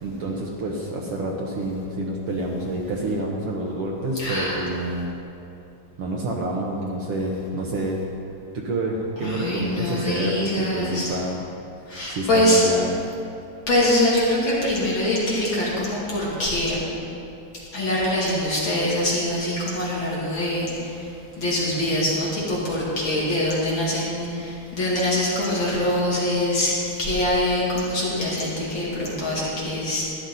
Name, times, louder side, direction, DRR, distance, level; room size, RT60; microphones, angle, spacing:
voice 1, 0.0-5.1 6.0-8.0 8.5-11.4 12.1-12.9, right 1 dB, 85° right, -2 dB, 1.2 m, -28 dB
voice 2, 4.2-4.6 9.2-11.2 11.9-12.6 13.7-16.8 17.7-21.1 21.4-30.0, left 1 dB, 35° left, -7 dB, 2.7 m, -24 dB
14.0 x 11.0 x 4.0 m, 2.7 s
omnidirectional pair, 4.1 m